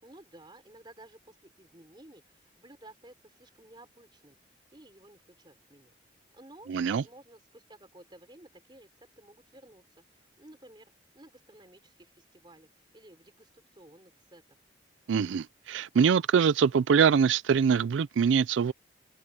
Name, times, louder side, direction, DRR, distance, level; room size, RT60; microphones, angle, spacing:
voice 1, 0.0-4.4 4.7-5.9 6.3-8.9 9.2-14.6, right 1 dB, 25° right, 3.7 m, -54 dB
voice 2, 6.7-7.0 15.1-18.7, right 6 dB, 80° right, 0.4 m, -24 dB
open air
head